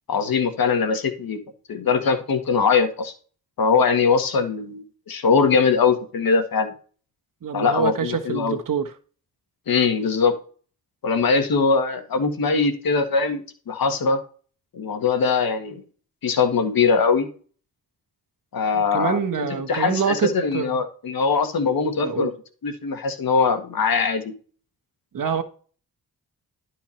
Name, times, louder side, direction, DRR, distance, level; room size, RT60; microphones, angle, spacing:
voice 1, 0.1-1.4 1.7-3.1 3.6-6.7 7.5-8.6 9.7-10.3 11.0-14.2 14.7-15.8 16.2-17.3 18.5-22.3 22.6-24.3, left 5 dB, 70° left, 1.8 m, -21 dB
voice 2, 7.4-8.9 18.7-20.8 22.0-22.3 25.1-25.4, right 7 dB, 60° right, 1.5 m, -26 dB
11.5 x 4.7 x 4.5 m
cardioid pair, 85°, 36 cm